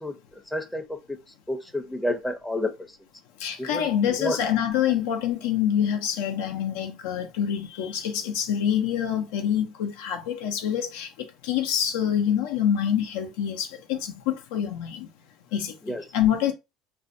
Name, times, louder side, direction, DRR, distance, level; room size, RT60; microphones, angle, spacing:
voice 1, 0.5-1.2 1.5-2.7 3.6-3.9 4.2-4.4 15.9-16.0, left 1 dB, 5° left, 0.5 m, -29 dB
voice 2, 3.4-11.1 11.5-15.1 15.5-15.7 16.1-16.5, left 9 dB, 85° left, 0.5 m, -26 dB
2.5 x 2.1 x 2.5 m
supercardioid pair, 95°, 0 cm